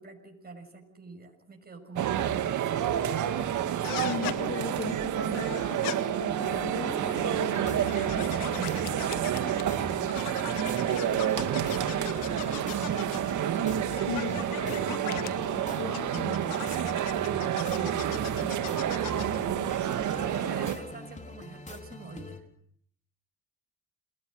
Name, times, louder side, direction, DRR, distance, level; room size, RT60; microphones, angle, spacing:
voice 1, 0.0-2.8 9.4-10.1 10.7-13.7 14.6-16.0 16.5-22.4, right 3 dB, 30° right, 2 dB, 6.8 m, -45 dB
sound 1, 2.0-20.8, right 10 dB, 65° right, 2.3 m, -29 dB
sound 2, 3.8-4.4 5.3-6.0 7.0-9.8 10.1-13.3 14.0-15.3 15.9-19.4, left 15 dB, 80° left, 1.6 m, -39 dB
voice 2, 4.0-9.1 14.0-15.0 15.8-16.4, left 6 dB, 40° left, 8 dB, 2.2 m, -39 dB
sound 3, 6.9-22.4, left 2 dB, 20° left, 3.9 m, -43 dB
29.5 x 20.0 x 6.6 m, 0.63 s
supercardioid pair, 65°, 33 cm